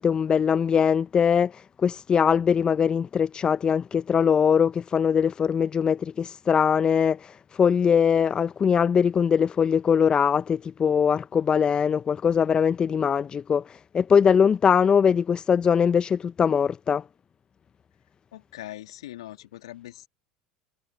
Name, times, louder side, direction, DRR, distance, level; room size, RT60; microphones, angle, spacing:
voice 1, 0.0-17.0, left 7 dB, 30° left, 0.8 m, -22 dB
voice 2, 18.3-20.1, left 14 dB, 80° left, 2.1 m, -41 dB
hypercardioid pair, 75°, 3 cm